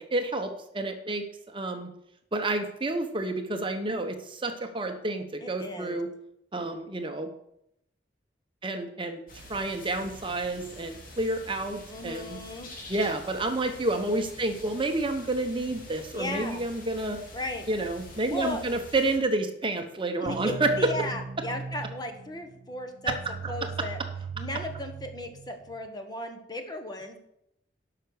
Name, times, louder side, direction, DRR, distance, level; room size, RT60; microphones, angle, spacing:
voice 1, 0.0-1.9 2.3-6.1 6.5-7.3 8.6-9.2 9.5-12.4 12.9-17.2 17.7-20.9 23.1-23.7, right 2 dB, 30° right, 6 dB, 0.9 m, -29 dB
voice 2, 5.4-6.0 11.9-12.7 16.1-16.6 17.3-17.7 18.3-18.6 20.2-23.2 23.5-24.0 24.3-27.2, left 1 dB, 25° left, 5 dB, 1.2 m, -36 dB
sound 1, 9.3-19.2, left 2 dB, 50° left, 2.4 m, -46 dB
sound 2, 20.3-25.9, right 4 dB, 55° right, 0.4 m, -38 dB
12.0 x 5.8 x 6.4 m, 0.77 s
head